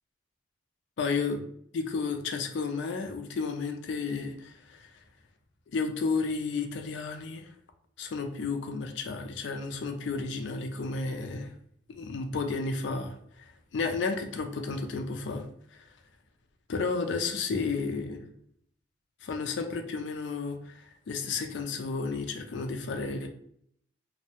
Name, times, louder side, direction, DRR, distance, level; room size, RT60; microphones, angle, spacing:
voice 1, 1.0-1.4 1.7-4.9 5.7-7.5 8.0-11.5 11.9-15.5 16.7-18.2 19.2-23.3, left 4 dB, 65° left, 5 dB, 0.4 m, -32 dB
2.6 x 2.1 x 2.7 m, 0.68 s
head